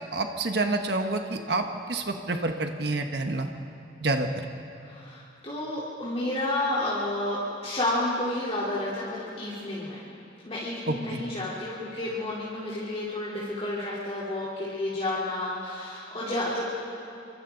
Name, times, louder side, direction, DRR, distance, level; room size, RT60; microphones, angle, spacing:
voice 1, 0.1-3.5 4.0-4.3 10.9-11.2, right 2 dB, 60° right, 5 dB, 1.3 m, -28 dB
voice 2, 4.8-10.0 10.4-16.6, left 1 dB, 30° left, -9 dB, 3.6 m, -31 dB
28.0 x 24.5 x 3.9 m, 2.8 s
head